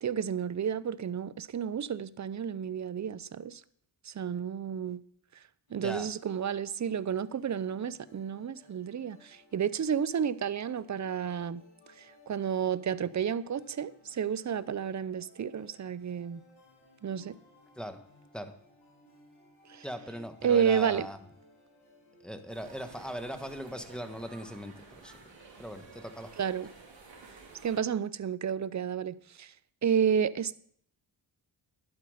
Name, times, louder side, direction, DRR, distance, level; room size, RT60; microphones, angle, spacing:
voice 1, 0.0-3.6 4.0-5.0 5.7-11.6 12.0-16.4 17.0-17.4 19.7-19.8 20.4-21.1 26.4-26.7 27.6-29.5 29.8-30.6, right 8 dB, 40° right, 0.6 m, -31 dB
sound 1, 5.7-24.1, left 1 dB, 85° left, 4.0 m, -60 dB
voice 2, 5.8-6.1 17.8-18.0 18.3-18.5 19.8-21.2 22.2-25.2 25.6-26.3, equal, ahead, 1.4 m, -39 dB
sound 2, 22.5-27.8, right 4 dB, 65° right, 2.7 m, -52 dB
11.5 x 8.0 x 5.1 m
cardioid pair, 55°, 47 cm